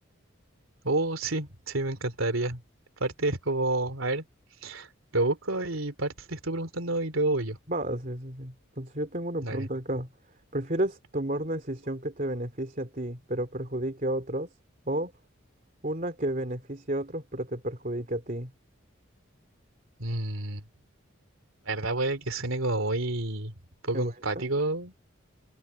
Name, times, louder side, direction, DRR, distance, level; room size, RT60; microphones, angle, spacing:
voice 1, 0.8-2.6 3.0-4.2 4.6-4.9 5.1-7.6 9.4-9.7 20.0-20.6 21.7-23.5 23.8-24.9, right 2 dB, 85° right, 3.1 m, -29 dB
voice 2, 7.7-10.1 10.5-14.5 14.9-15.1 15.8-18.5 23.9-24.5, right 1 dB, 40° right, 3.0 m, -32 dB
head